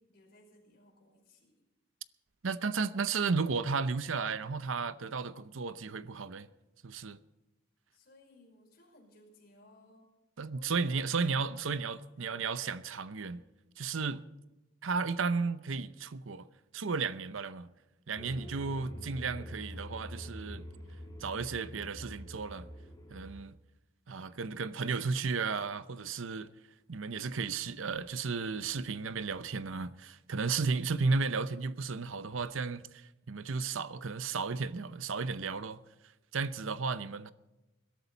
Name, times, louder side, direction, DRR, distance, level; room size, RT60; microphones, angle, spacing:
voice 1, 0.0-1.7 7.9-10.1 10.6-12.6, left 1 dB, 50° left, 5.2 m, -61 dB
voice 2, 2.4-6.5 6.8-7.2 10.4-13.4 13.8-14.2 14.8-16.5 16.7-17.7 18.1-20.6 21.2-22.7 23.1-23.5 24.1-26.5 26.9-35.8 36.3-37.3, right 4 dB, 80° right, 0.7 m, -34 dB
sound 1, 18.2-23.4, equal, 20° left, 2.2 m, -45 dB
21.5 x 13.0 x 4.1 m
head